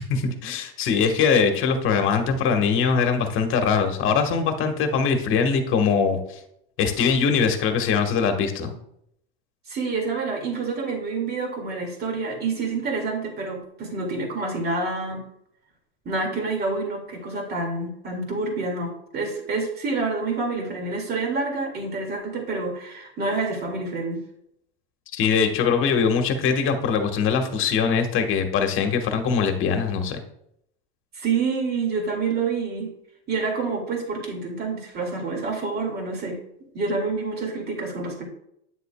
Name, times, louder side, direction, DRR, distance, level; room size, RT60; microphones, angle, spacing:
voice 1, 0.0-6.2 6.8-8.7 25.1-30.2, left 6 dB, 40° left, 6 dB, 1.3 m, -22 dB
voice 2, 9.7-15.3 16.1-24.2 31.1-32.9 33.3-36.4 36.7-38.2, right 4 dB, 30° right, 2 dB, 2.1 m, -28 dB
9.1 x 6.8 x 2.2 m, 0.74 s
supercardioid pair, 120°, 31 cm